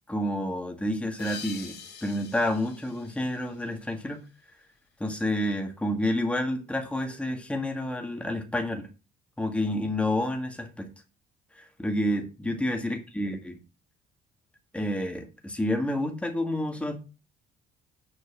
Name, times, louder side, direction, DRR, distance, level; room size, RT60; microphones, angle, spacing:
voice 1, 0.1-4.2 5.0-8.9 9.4-10.9 11.5-13.6 14.7-17.0, left 1 dB, 5° left, 1.8 m, -29 dB
sound 1, 1.2-4.3, left 7 dB, 75° left, 2.3 m, -45 dB
7.2 x 4.5 x 6.0 m
cardioid pair, 110°, 17 cm